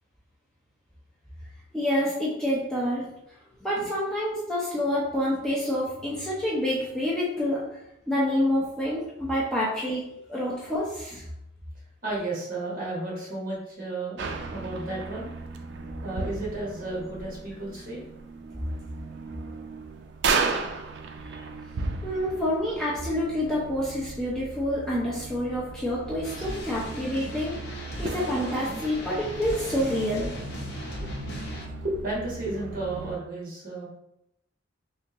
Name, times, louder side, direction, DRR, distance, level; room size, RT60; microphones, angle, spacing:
voice 1, 1.7-3.1 3.6-7.6 8.1-11.2 22.0-30.3, left 1 dB, 5° left, -8 dB, 0.6 m, -28 dB
voice 2, 12.0-14.2 14.5-15.3 16.0-18.1 31.0-31.1 31.5-33.9, right 2 dB, 45° right, -5 dB, 1.3 m, -33 dB
sound 1, 14.2-33.2, right 4 dB, 60° right, 0.3 m, -35 dB
sound 2, 26.2-31.6, left 1 dB, 50° left, 0.8 m, -38 dB
3.4 x 2.9 x 2.9 m, 0.82 s
head